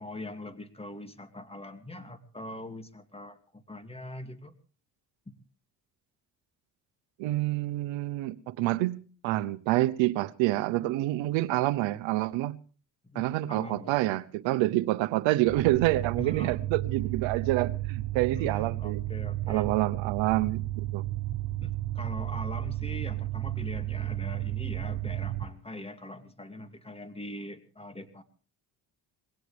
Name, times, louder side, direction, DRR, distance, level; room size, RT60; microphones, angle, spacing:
voice 1, 0.0-4.5 5.3-5.4 13.0-14.0 16.2-16.6 18.3-19.7 21.6-28.2, left 1 dB, 15° left, 2.4 m, -42 dB
voice 2, 7.2-12.6 13.1-19.0 19.5-20.6 20.9-21.0, right 17 dB, 85° right, 0.9 m, -27 dB
sound 1, 15.5-25.4, right 15 dB, 70° right, 1.6 m, -33 dB
21.0 x 17.5 x 3.4 m
supercardioid pair, 70°, 44 cm